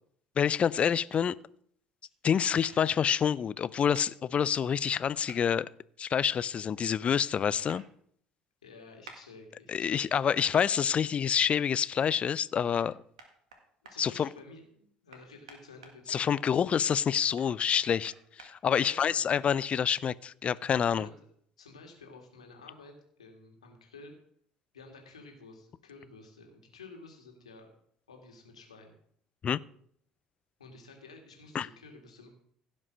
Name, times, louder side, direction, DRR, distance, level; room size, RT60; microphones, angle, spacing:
voice 1, 0.4-1.3 2.2-5.7 6.0-7.8 9.7-13.0 14.0-14.3 16.1-18.1 18.4-21.1 29.4-29.6 31.5-31.7, left 8 dB, 35° left, 19 dB, 0.5 m, -27 dB
sound 1, 1.1-1.2 2.6-2.8 3.9-4.1 5.3-5.4 7.7-7.8 9.0-9.2 10.4-10.5 12.8-12.9 13.2-14.0 15.1-16.3 17.4-18.5, right 4 dB, 75° right, 1.9 m, -50 dB
voice 2, 8.6-10.1 13.8-16.4 18.8-19.2 20.9-21.1 21.6-24.1 24.7-27.7 28.1-28.9 30.6-32.3, left 3 dB, 80° left, 2 dB, 2.3 m, -51 dB
16.0 x 5.4 x 6.2 m, 0.65 s
figure-of-eight pair, 60°, 3 cm